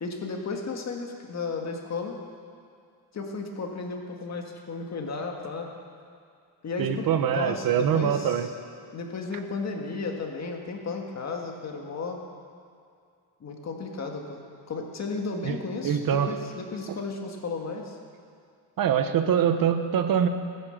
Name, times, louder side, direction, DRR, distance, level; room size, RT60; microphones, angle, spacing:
voice 1, 0.0-2.2 3.1-5.7 6.6-8.5 8.9-12.2 13.4-18.0, left 4 dB, 45° left, 2 dB, 1.8 m, -34 dB
voice 2, 6.8-8.5 15.4-15.6 15.8-16.3 16.9-17.0 18.8-20.3, right 8 dB, 70° right, 9 dB, 1.0 m, -24 dB
16.0 x 9.8 x 7.8 m, 2.3 s
wide cardioid pair, 170°, 36 cm